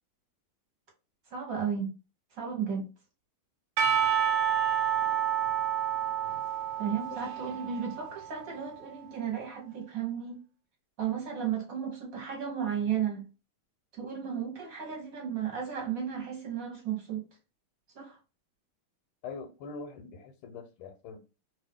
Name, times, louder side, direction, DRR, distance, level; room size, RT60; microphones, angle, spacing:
voice 1, 1.3-1.9 2.3-2.8 6.8-10.4 11.0-13.2 14.0-17.2 17.9-18.2, right 8 dB, 45° right, 1.3 m, -34 dB
Percussion / Church bell, 3.8-8.5, right 9 dB, 70° right, 1.1 m, -29 dB
voice 2, 19.2-21.2, left 4 dB, 80° left, 1.5 m, -43 dB
3.3 x 2.7 x 3.5 m
omnidirectional pair, 2.4 m